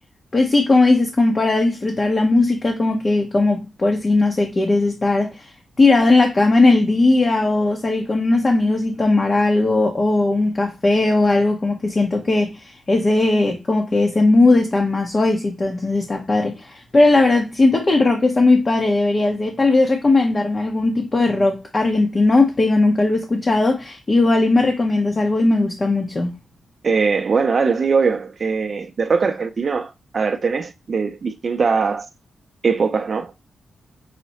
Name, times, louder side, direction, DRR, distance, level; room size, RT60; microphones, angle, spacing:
voice 1, 0.3-5.5 5.8-26.3, left 2 dB, 30° left, 0.7 m, -18 dB
voice 2, 26.8-32.1 32.6-33.3, right 5 dB, 45° right, 0.4 m, -21 dB
5.6 x 2.1 x 4.0 m
wide cardioid pair, 130°, 0 cm